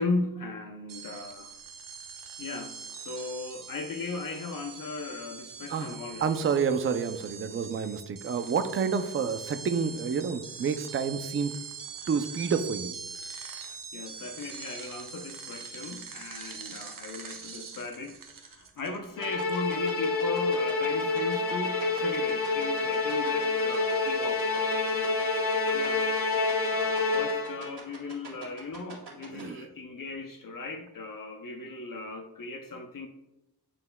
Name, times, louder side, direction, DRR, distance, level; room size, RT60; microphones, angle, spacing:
voice 1, 0.0-1.5 2.4-6.3 13.6-25.3 25.7-26.4 26.7-33.1, left 3 dB, 55° left, 5 dB, 0.7 m, -37 dB
sound 1, 0.9-20.0, right 6 dB, 50° right, 0.9 m, -43 dB
voice 2, 5.7-11.5 12.1-12.9 29.3-29.7, right 6 dB, 30° right, 9 dB, 0.4 m, -29 dB
Musical instrument, 19.2-27.7, left 3 dB, 35° left, 1.5 m, -28 dB
sound 2, 19.2-29.4, right 5 dB, 70° right, 2.2 m, -44 dB
10.5 x 4.4 x 2.2 m, 0.93 s
wide cardioid pair, 100°, 41 cm